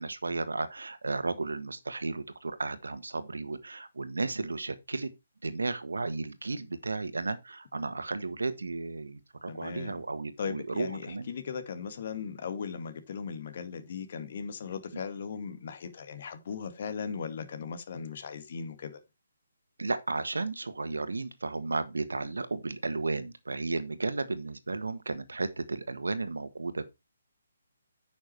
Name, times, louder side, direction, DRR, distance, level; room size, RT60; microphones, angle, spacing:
voice 1, 0.0-5.1 5.4-11.3 14.9-15.0 19.8-26.8, right 3 dB, 85° right, 1.5 m, -34 dB
voice 2, 9.5-10.0 10.4-19.0, left 6 dB, 50° left, 2.0 m, -38 dB
9.6 x 6.3 x 4.6 m
hypercardioid pair, 150°, 0 cm